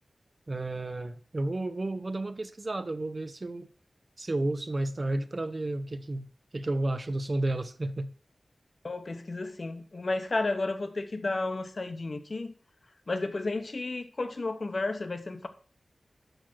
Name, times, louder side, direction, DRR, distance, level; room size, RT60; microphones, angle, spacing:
voice 1, 0.5-3.7 4.2-6.3 6.5-8.1, right 2 dB, 35° right, 0.5 m, -32 dB
voice 2, 8.8-12.5 13.1-15.5, left 2 dB, 45° left, 0.9 m, -32 dB
6.4 x 6.0 x 6.0 m
wide cardioid pair, 95°, 0 cm